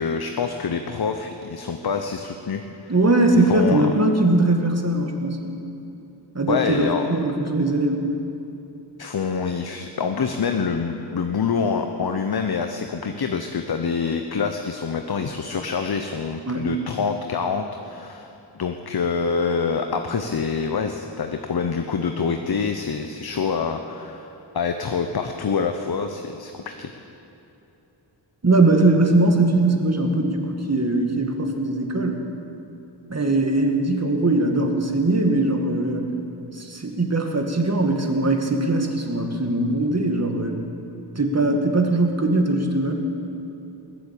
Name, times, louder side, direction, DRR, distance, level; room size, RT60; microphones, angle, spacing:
voice 1, 0.0-2.9 3.5-3.8 6.5-7.0 9.0-18.3 18.5-24.3 24.5-26.9, left 5 dB, 55° left, 6 dB, 1.0 m, -26 dB
voice 2, 2.9-5.4 6.3-8.0 16.5-16.7 28.4-32.3 33.1-36.1 36.5-40.6 41.2-42.9, right 2 dB, 35° right, 3 dB, 2.2 m, -21 dB
20.5 x 7.8 x 8.6 m, 2.9 s
cardioid pair, 50°, 44 cm